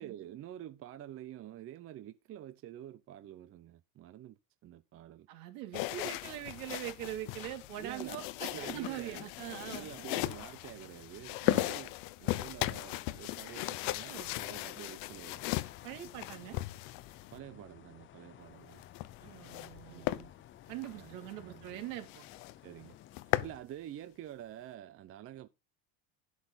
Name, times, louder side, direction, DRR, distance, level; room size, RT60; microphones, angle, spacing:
voice 1, 0.0-5.3 7.8-9.3 9.6-11.9 12.2-15.4 16.5-16.6 17.3-18.8 19.9-20.2 20.9-21.8 22.6-23.0 23.3-25.5, right 12 dB, 30° right, 0.6 m, -48 dB
voice 2, 5.3-9.9 11.4-11.7 14.0-14.3 15.8-16.6 19.2-20.3 20.7-22.2, right 12 dB, 75° right, 3.1 m, -43 dB
sound 1, 5.7-17.4 18.7-19.7 20.0-20.2 20.7-20.9 21.3-21.4 21.7-21.8 22.1-22.5 22.9-23.6, left 18 dB, 65° left, 0.9 m, -37 dB
sound 2, 15.3-23.6, left 12 dB, 30° left, 0.5 m, -55 dB
11.0 x 8.2 x 4.0 m
cardioid pair, 140°, 44 cm